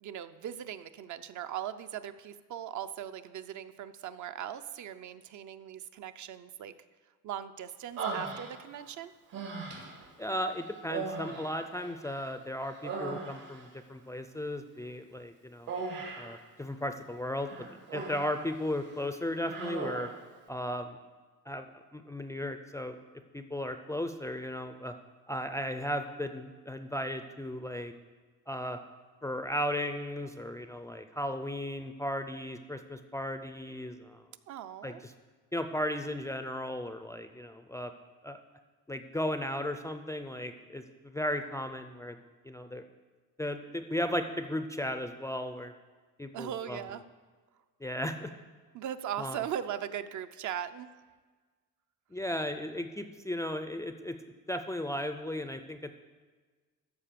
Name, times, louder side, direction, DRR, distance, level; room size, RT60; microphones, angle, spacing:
voice 1, 0.0-6.7 7.2-9.1 34.5-35.0 46.3-47.0 48.7-50.9, right 10 dB, 60° right, 11 dB, 0.5 m, -39 dB
Human voice, 8.0-8.9 9.3-10.1 10.8-12.3 12.6-13.7 15.7-16.4 17.4-18.4 18.8-19.0 19.4-20.2, right 4 dB, 75° right, 2.1 m, -38 dB
voice 2, 10.2-15.7 16.2-20.1 20.5-21.0 21.5-21.7 21.9-23.0 23.3-24.9 25.3-27.9 28.5-28.8 29.2-34.2 34.8-35.1 35.5-37.9 38.2-38.4 38.9-42.2 42.4-42.8 43.4-45.7 46.2-46.8 47.8-48.3 49.2-49.4 52.1-54.2 54.5-55.9, left 1 dB, 10° left, 7 dB, 0.3 m, -35 dB
13.5 x 4.9 x 6.7 m, 1.4 s
cardioid pair, 155°, 34 cm